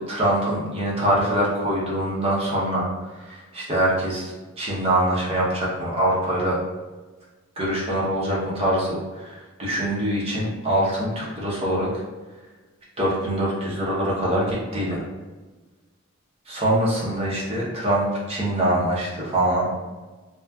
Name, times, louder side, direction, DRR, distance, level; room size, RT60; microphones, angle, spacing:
voice 1, 0.1-6.6 7.6-12.0 13.0-15.0 16.5-19.7, right 1 dB, 25° right, -5 dB, 0.7 m, -24 dB
3.0 x 2.3 x 2.2 m, 1.3 s
head